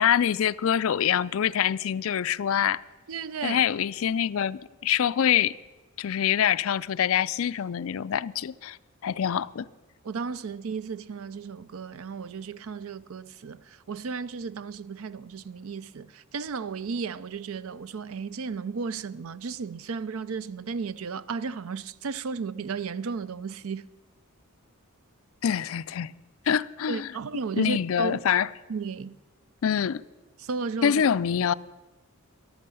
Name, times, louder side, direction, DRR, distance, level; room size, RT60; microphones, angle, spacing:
voice 1, 0.0-2.8 3.4-5.5 6.0-8.8 9.0-9.7 25.4-26.1 26.5-27.1 27.6-28.5 29.6-30.0 30.8-31.5, left 9 dB, 65° left, 0.4 m, -25 dB
voice 2, 3.1-3.6 10.0-23.8 26.9-28.2 28.7-29.2 30.4-31.0, right 5 dB, 70° right, 0.5 m, -34 dB
14.0 x 11.5 x 6.9 m
head